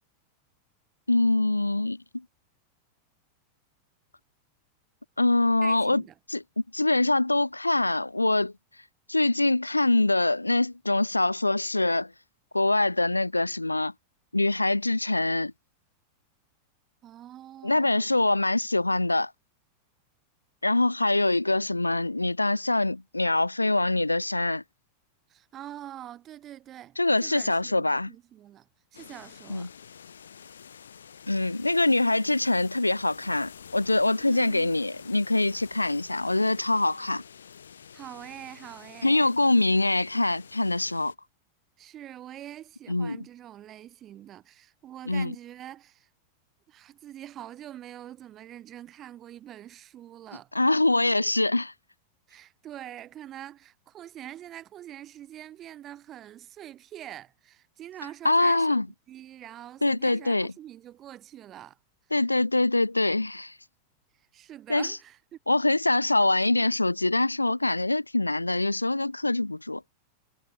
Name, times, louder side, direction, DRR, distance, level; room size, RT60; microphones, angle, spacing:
voice 1, 1.1-2.2 5.2-6.0 6.3-6.4 6.7-8.5 9.1-12.1 12.5-13.9 14.3-15.5 17.6-19.3 20.6-24.6 27.0-28.1 29.5-29.7 31.3-37.2 39.0-41.1 42.9-43.2 45.1-45.3 50.5-51.7 58.2-58.9 59.8-60.5 62.1-63.5 64.7-65.0 65.5-69.8, left 2 dB, 85° left, 2.1 m, -24 dB
voice 2, 5.6-6.1 17.0-18.1 25.3-29.7 34.2-34.8 37.9-39.3 41.8-46.1 46.7-50.5 52.3-58.8 59.1-61.8 64.3-65.4, right 12 dB, 30° right, 5.9 m, -44 dB
sound 1, 28.9-41.1, left 7 dB, 70° left, 6.1 m, -48 dB
figure-of-eight pair, 90°, 0 cm